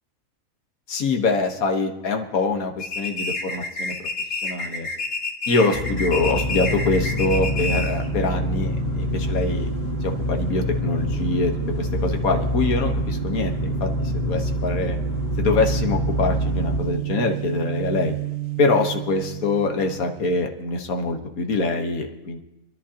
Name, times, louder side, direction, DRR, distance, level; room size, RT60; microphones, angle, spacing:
voice 1, 0.9-3.9 4.4-4.9 5.5-9.7 10.0-15.0 15.4-18.1 18.6-22.4, left 3 dB, 90° left, 4 dB, 1.7 m, -24 dB
sound 1, 2.8-8.1, left 3 dB, 60° left, 2.1 m, -29 dB
sound 2, 5.7-16.8, left 2 dB, 30° left, 1.5 m, -26 dB
sound 3, 6.0-20.5, right 18 dB, 85° right, 1.5 m, -31 dB
27.0 x 11.0 x 2.9 m, 0.95 s
omnidirectional pair, 1.5 m